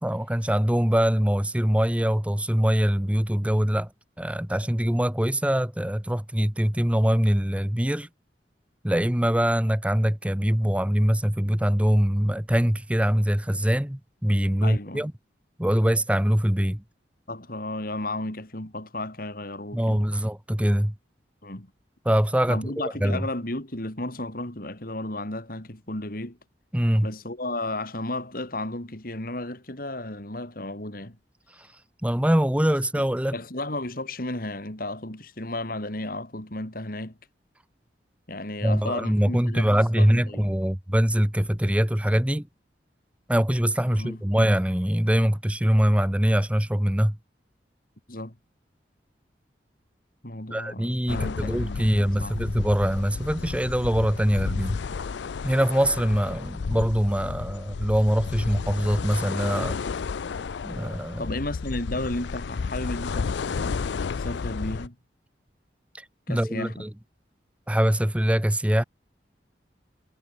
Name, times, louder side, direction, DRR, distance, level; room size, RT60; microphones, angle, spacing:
voice 1, 0.0-3.9 4.2-8.1 8.8-15.1 15.6-16.8 19.7-20.9 22.0-23.2 26.7-27.1 32.0-33.4 38.6-42.5 43.3-47.2 50.5-54.8 55.4-59.8 60.6-61.3 65.9-66.9 67.7-68.8, equal, 5° right, 1.0 m, -23 dB
voice 2, 14.6-15.1 17.3-20.0 21.4-21.7 22.5-26.4 27.0-31.2 33.0-33.1 33.3-37.2 38.3-40.5 43.9-44.2 48.1-48.4 50.2-52.4 61.2-63.9 64.2-65.0 66.3-66.9, left 1 dB, 55° left, 3.7 m, -33 dB
sound 1, 51.1-64.9, left 5 dB, 80° left, 0.5 m, -32 dB
head